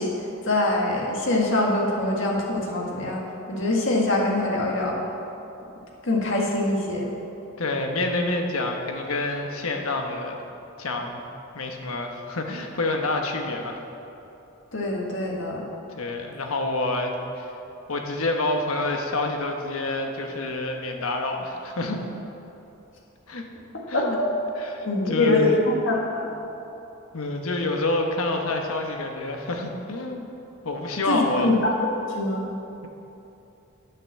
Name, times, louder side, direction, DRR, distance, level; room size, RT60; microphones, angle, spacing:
voice 1, 0.0-3.2 3.5-5.1 6.0-7.1 14.7-15.7 23.9-24.3 24.8-26.3 31.1-31.6 31.9-32.5, left 1 dB, 60° left, -2 dB, 1.8 m, -24 dB
voice 2, 7.6-10.4 10.8-11.2 11.5-13.8 15.9-17.5 17.9-22.1 23.3-23.4 23.9-24.2 24.6-25.6 27.1-30.3 30.6-31.5, left 2 dB, 80° left, 3 dB, 1.1 m, -27 dB
10.5 x 6.0 x 7.3 m, 3.0 s
head